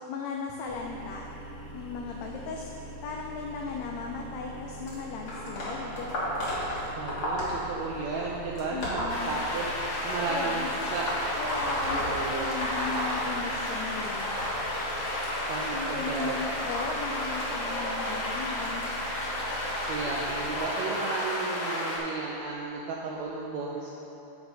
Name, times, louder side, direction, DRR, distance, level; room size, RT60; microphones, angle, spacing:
voice 1, 0.1-1.2 1.7-2.7 3.0-6.1 8.7-9.3 10.3-10.9 11.4-14.4 15.7-18.9, left 4 dB, 90° left, 1 dB, 1.5 m, -37 dB
sound 1, 0.6-20.6, equal, 50° right, 1.7 m, -44 dB
sound 2, 4.9-10.0 10.8-13.8 14.0-19.4 20.2-20.4 21.5-21.6 22.5-22.6 23.3-23.4, equal, 50° left, 2.0 m, -35 dB
voice 2, 7.0-9.7 10.0-10.7 10.9-11.1 11.9-12.6 15.5-16.4 19.9-23.9, right 4 dB, 90° right, -3 dB, 1.6 m, -34 dB
sound 3, 9.1-22.0, left 1 dB, 65° left, 3.0 m, -32 dB
8.1 x 5.4 x 5.0 m, 2.9 s
omnidirectional pair, 3.8 m